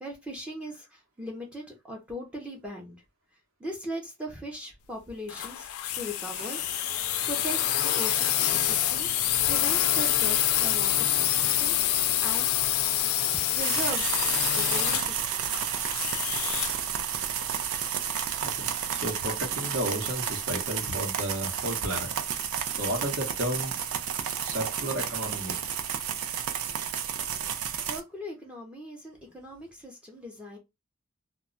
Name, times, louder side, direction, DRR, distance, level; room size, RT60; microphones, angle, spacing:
voice 1, 0.0-3.0 3.6-6.6 7.3-9.1 9.5-12.7 13.0-14.2 14.5-15.5 27.8-30.6, equal, 5° right, 0.5 m, -39 dB
sound 1, 5.3-16.9, left 11 dB, 85° left, 0.4 m, -27 dB
sound 2, 6.3-16.5, right 1 dB, 45° right, 0.7 m, -48 dB
sound 3, 13.6-28.0, right 8 dB, 85° right, 0.4 m, -31 dB
voice 2, 18.4-22.1 22.7-23.7 24.4-25.7, right 1 dB, 65° right, 0.9 m, -33 dB
2.2 x 2.0 x 3.7 m
head